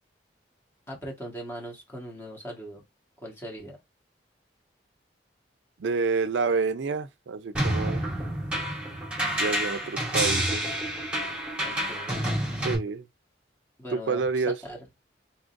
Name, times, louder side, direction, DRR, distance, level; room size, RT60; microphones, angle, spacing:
voice 1, 0.9-2.8 3.2-3.8 11.6-12.1 13.8-14.9, equal, 15° left, 1.4 m, -40 dB
voice 2, 5.8-8.0 9.3-10.8 12.6-13.1 13.9-14.6, right 4 dB, 80° right, 0.4 m, -28 dB
sound 1, 7.5-12.7, right 1 dB, 5° right, 1.6 m, -28 dB
4.1 x 3.8 x 2.5 m
head